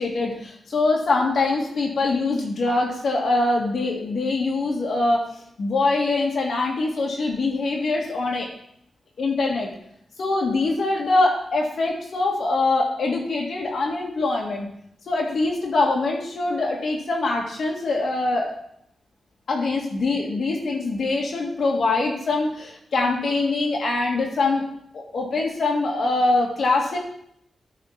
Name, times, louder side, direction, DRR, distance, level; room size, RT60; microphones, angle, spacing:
voice 1, 0.0-5.2 5.6-8.5 9.2-9.7 10.2-14.7 15.1-18.5 19.5-24.7 24.9-27.0, left 3 dB, 70° left, -1 dB, 1.8 m, -23 dB
9.5 x 4.3 x 5.8 m, 0.71 s
cardioid pair, 55°, 0 cm